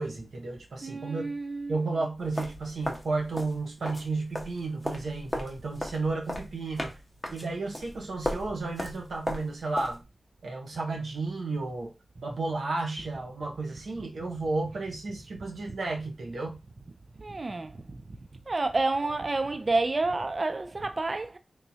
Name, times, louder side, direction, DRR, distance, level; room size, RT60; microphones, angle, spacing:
voice 1, 0.0-1.3 1.7-7.0 7.3-10.0 10.4-16.6, right 3 dB, 85° right, 0.9 m, -33 dB
voice 2, 0.8-1.8 17.2-18.0 18.5-21.4, right 3 dB, 40° right, 0.4 m, -29 dB
sound 1, 2.2-4.1 4.4-10.0, left 1 dB, 5° left, 0.8 m, -36 dB
3.5 x 3.0 x 2.7 m
wide cardioid pair, 90°, 0 cm